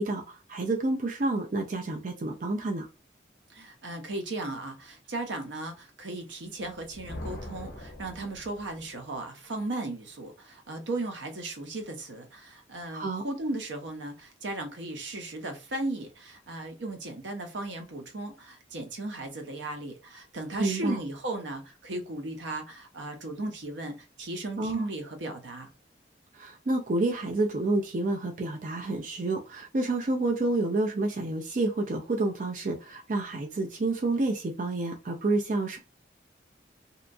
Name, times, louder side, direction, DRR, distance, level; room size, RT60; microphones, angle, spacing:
voice 1, 0.0-2.9 12.9-13.2 20.6-21.0 24.6-24.9 26.3-35.8, right 2 dB, 45° right, 0.4 m, -29 dB
voice 2, 3.5-25.7, right 2 dB, 80° right, 0.7 m, -36 dB
Thunder, 6.6-9.0, left 1 dB, 50° left, 0.9 m, -42 dB
2.8 x 2.2 x 2.5 m
head